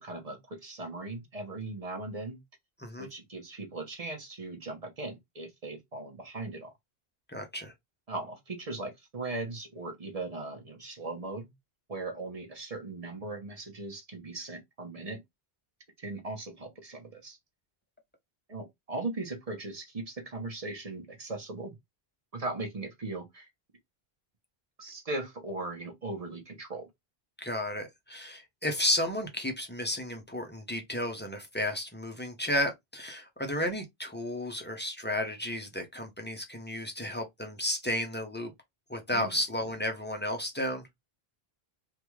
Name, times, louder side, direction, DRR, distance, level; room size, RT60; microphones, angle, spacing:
voice 1, 0.0-2.4 3.0-6.7 8.1-11.5 11.9-15.2 16.0-17.4 18.5-21.8 22.3-23.5 24.8-26.9 39.1-39.4, right 2 dB, 40° right, 0.8 m, -38 dB
voice 2, 7.3-7.7 27.4-38.5 38.9-40.9, left 1 dB, 15° left, 0.6 m, -33 dB
3.4 x 2.3 x 3.0 m
omnidirectional pair, 1.1 m